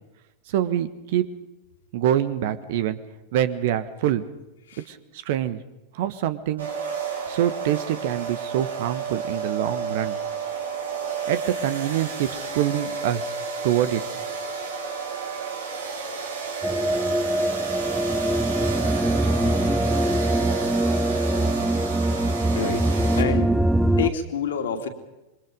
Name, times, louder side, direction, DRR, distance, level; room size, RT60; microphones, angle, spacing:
voice 1, 0.5-1.2 1.9-3.0 3.3-4.3 4.9-5.6 5.9-6.7 7.3-10.2 11.3-13.3 13.6-14.0, right 11 dB, 50° right, 13 dB, 1.4 m, -25 dB
sound 1, 6.6-23.2, right 6 dB, 70° right, 4.5 m, -31 dB
sound 2, 16.6-24.1, right 1 dB, 5° right, 0.7 m, -23 dB
voice 2, 22.5-22.8 23.1-23.5 24.0-24.9, left 6 dB, 60° left, 5 dB, 2.9 m, -27 dB
26.5 x 23.5 x 5.3 m, 0.99 s
figure-of-eight pair, 90°, 0 cm